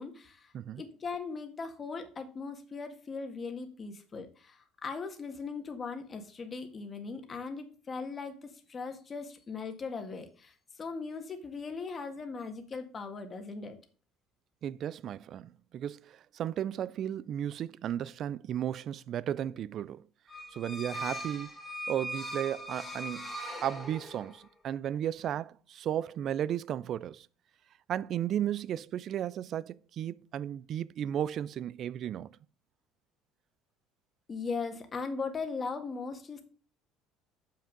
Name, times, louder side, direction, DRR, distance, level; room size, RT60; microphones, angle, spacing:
voice 1, 0.0-13.8 34.3-36.5, left 4 dB, 30° left, 1.7 m, -39 dB
voice 2, 14.6-20.1 20.5-21.5 21.9-23.3 23.6-27.3 27.9-32.4, right 10 dB, 50° right, 0.4 m, -34 dB
sound 1, 20.3-24.4, equal, 10° left, 1.9 m, -40 dB
7.4 x 5.9 x 5.2 m
cardioid pair, 120°, 0 cm